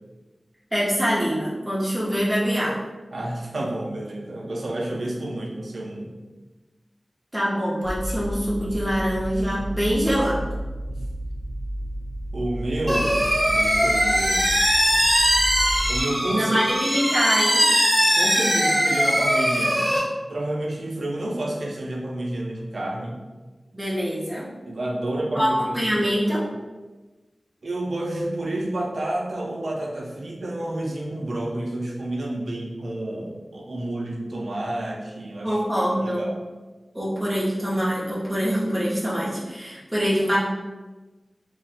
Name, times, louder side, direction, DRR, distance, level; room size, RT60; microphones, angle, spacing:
voice 1, 0.7-2.8 7.3-10.4 16.3-17.6 23.7-24.5 25.3-26.4 35.4-36.3 36.9-40.4, equal, 20° right, -7 dB, 0.7 m, -24 dB
voice 2, 3.1-6.1 10.9-11.0 12.3-14.5 15.9-16.6 18.1-20.0 20.3-23.2 24.7-25.9 26.3-26.5 27.6-35.6 36.0-36.3, right 1 dB, 80° right, -2 dB, 0.6 m, -29 dB
sound 1, 7.8-16.0, right 1 dB, 45° left, 0.5 m, -32 dB
sound 2, 12.9-20.0, equal, ahead, 1.1 m, -21 dB
2.5 x 2.1 x 4.0 m, 1.2 s
wide cardioid pair, 65°, 0 cm